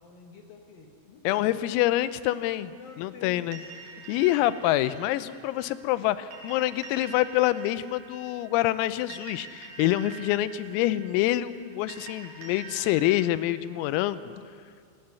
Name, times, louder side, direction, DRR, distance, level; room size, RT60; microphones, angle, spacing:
voice 1, 0.0-1.6 2.7-4.2, left 6 dB, 65° left, 2 dB, 2.3 m, -49 dB
voice 2, 1.2-3.6 4.1-14.3, left 15 dB, 85° left, 14 dB, 3.4 m, -26 dB
sound 1, 3.5-13.3, right 5 dB, 50° right, 4.7 m, -46 dB
29.0 x 18.5 x 6.9 m, 2.2 s
omnidirectional pair, 6.0 m